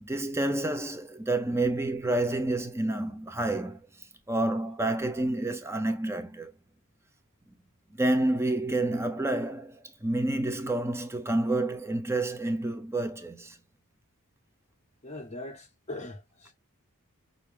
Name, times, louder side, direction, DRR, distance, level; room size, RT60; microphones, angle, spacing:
voice 1, 0.0-3.8 4.3-6.5 8.0-13.6, right 2 dB, 10° right, 0.7 m, -29 dB
voice 2, 15.0-16.5, left 2 dB, 30° left, 1.0 m, -41 dB
5.9 x 2.7 x 3.4 m
head